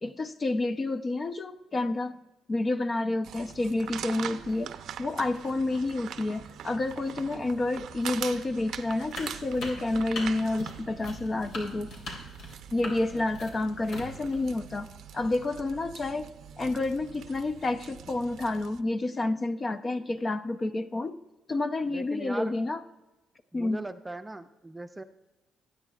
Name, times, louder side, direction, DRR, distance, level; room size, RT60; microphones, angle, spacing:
voice 1, 0.0-2.2 2.5-4.7 5.0-11.9 12.7-14.9 15.1-16.3 16.6-21.2 21.5-22.8 23.5-23.8, left 2 dB, 35° left, 9 dB, 0.7 m, -29 dB
sound 1, 3.2-18.8, right 9 dB, 75° right, 0.6 m, -43 dB
sound 2, 9.1-14.8, left 2 dB, 75° left, 3.0 m, -41 dB
voice 2, 12.8-13.2 21.9-22.5 23.5-25.0, right 2 dB, 15° right, 8 dB, 0.6 m, -40 dB
25.0 x 9.0 x 2.4 m, 1.1 s
cardioid pair, 90°, 0 cm